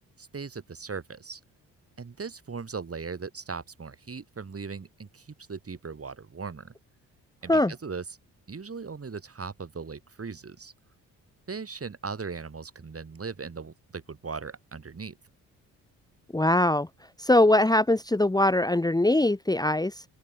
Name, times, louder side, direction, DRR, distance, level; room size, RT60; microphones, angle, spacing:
voice 1, 0.2-1.4 2.0-6.7 7.4-8.0 8.5-10.7 11.5-15.2, right 5 dB, 35° right, 4.5 m, -38 dB
voice 2, 16.3-16.9 17.2-20.0, left 1 dB, 10° left, 1.5 m, -22 dB
open air
hypercardioid pair, 55°, 39 cm